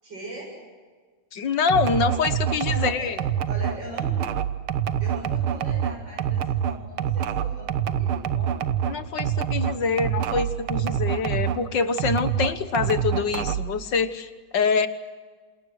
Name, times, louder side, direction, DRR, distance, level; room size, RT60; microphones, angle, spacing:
voice 1, 0.0-0.6 2.6-3.1 3.5-4.2 5.0-8.6, right 1 dB, 60° right, -2 dB, 8.2 m, -39 dB
voice 2, 1.3-3.2 8.9-14.9, left 5 dB, 65° left, 11 dB, 1.8 m, -25 dB
sound 1, 1.7-11.6 12.0-13.8, right 9 dB, 90° right, 1.9 m, -26 dB
28.0 x 28.0 x 6.5 m, 1.5 s
omnidirectional pair, 2.3 m